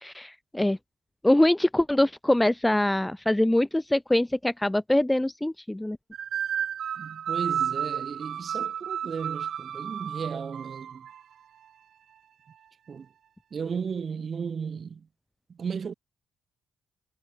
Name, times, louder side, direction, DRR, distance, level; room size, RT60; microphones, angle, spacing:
voice 1, 0.0-0.8 1.2-6.0, left 1 dB, 10° left, 0.9 m, -23 dB
sound 1, 6.1-11.2, right 9 dB, 60° right, 2.7 m, -32 dB
voice 2, 7.0-11.1 12.9-13.1 13.5-15.1 15.5-15.9, right 6 dB, 45° right, 6.3 m, -34 dB
cardioid pair, 90°, 0 cm